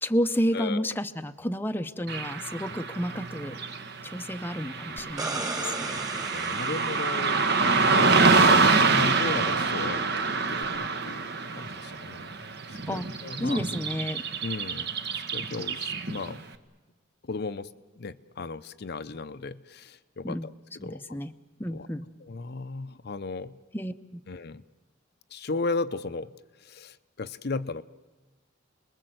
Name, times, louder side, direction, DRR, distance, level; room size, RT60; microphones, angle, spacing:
voice 1, 0.0-3.6 4.0-5.9 12.9-13.1 13.4-14.2 20.2-20.5 20.8-21.3 21.6-22.1 23.7-24.2, equal, 10° left, 7 dB, 0.7 m, -31 dB
voice 2, 0.5-0.9 5.6-8.3 8.8-10.0 10.5-11.2 11.6-12.5 12.9-13.6 14.4-14.9 15.3-16.4 17.2-17.7 18.0-20.4 20.8-21.0 21.7-21.9 22.3-23.6 24.3-24.6 25.3-26.3 26.6-27.8, left 3 dB, 55° left, 11 dB, 0.7 m, -35 dB
Car passing by / Traffic noise roadway noise, 2.1-16.4, right 4 dB, 55° right, 1.5 m, -26 dB
sound 1, 5.0-7.8 10.6-10.7, right 3 dB, 20° right, 1.9 m, -36 dB
29.5 x 21.0 x 7.9 m, 1.2 s
head